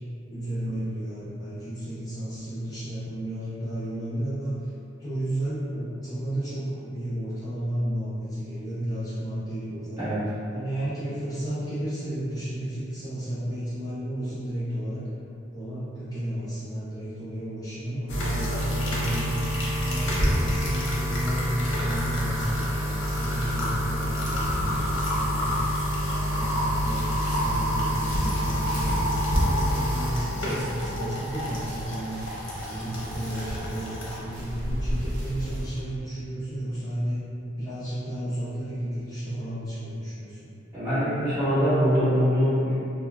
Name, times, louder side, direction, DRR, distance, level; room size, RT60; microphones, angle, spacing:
voice 1, 0.3-4.5 5.0-10.1 10.5-15.1 15.5-19.4 19.8-25.6 26.0-32.2 32.6-33.9 34.2-37.2 37.6-40.5, right 1 dB, 20° left, -13 dB, 0.5 m, -32 dB
sound 1, 18.1-34.2, equal, 70° left, 0.6 m, -28 dB
sound 2, 19.2-35.8, equal, 90° right, 0.7 m, -34 dB
voice 2, 40.7-42.7, equal, 20° right, -15 dB, 1.2 m, -23 dB
2.3 x 2.2 x 3.2 m, 2.7 s
head